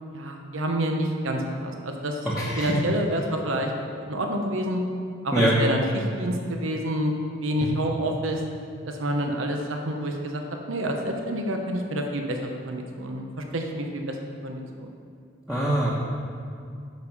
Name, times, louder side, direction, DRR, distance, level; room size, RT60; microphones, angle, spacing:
voice 1, 0.1-2.2 2.6-4.8 5.2-7.1 7.4-8.4 8.9-14.9, right 1 dB, 80° right, 3 dB, 1.0 m, -28 dB
voice 2, 2.4-2.7 5.3-5.5 7.6-7.7 15.5-15.9, right 1 dB, 5° right, -9 dB, 1.1 m, -23 dB
9.5 x 6.9 x 5.4 m, 2.4 s
head